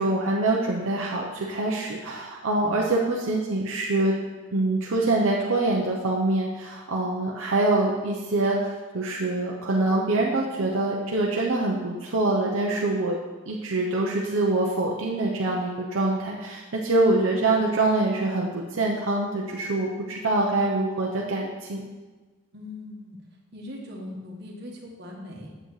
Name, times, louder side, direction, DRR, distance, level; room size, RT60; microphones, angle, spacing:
voice 1, 0.0-4.1 4.5-13.2 13.5-21.8, right 2 dB, 75° right, -2 dB, 0.8 m, -25 dB
voice 2, 22.5-23.2 23.5-25.5, left 1 dB, 55° right, -1 dB, 1.4 m, -40 dB
7.9 x 7.4 x 3.2 m, 1.3 s
head